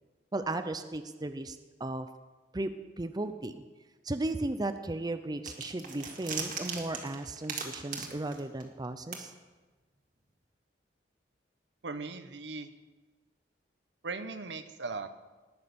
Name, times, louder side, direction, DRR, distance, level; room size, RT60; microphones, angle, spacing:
voice 1, 0.3-2.1 2.5-2.7 3.0-3.7 4.0-9.3, right 2 dB, 25° right, 9 dB, 0.6 m, -35 dB
sound 1, 5.5-8.9 9.1-9.2, right 5 dB, 50° right, 1.8 m, -39 dB
voice 2, 11.8-12.7 14.0-15.1, right 4 dB, 80° right, 10 dB, 0.9 m, -38 dB
19.0 x 6.4 x 7.0 m, 1.2 s
head